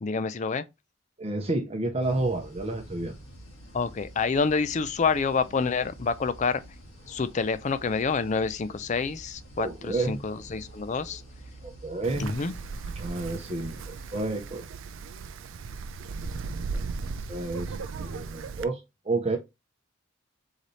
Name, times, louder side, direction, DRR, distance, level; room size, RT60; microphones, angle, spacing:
voice 1, 0.0-0.6 3.7-6.6 7.1-11.2 12.2-12.5, left 4 dB, 35° left, 0.4 m, -28 dB
voice 2, 1.2-3.2 9.6-10.2 11.6-12.3 13.0-14.6 16.7-16.8 17.3-17.7 18.0-18.8 19.0-19.4, right 2 dB, 30° right, 0.7 m, -30 dB
sound 1, 2.0-14.2, right 1 dB, 85° left, 1.8 m, -48 dB
Wind, 12.0-18.6, right 4 dB, 65° right, 0.4 m, -37 dB
4.0 x 3.2 x 4.0 m
head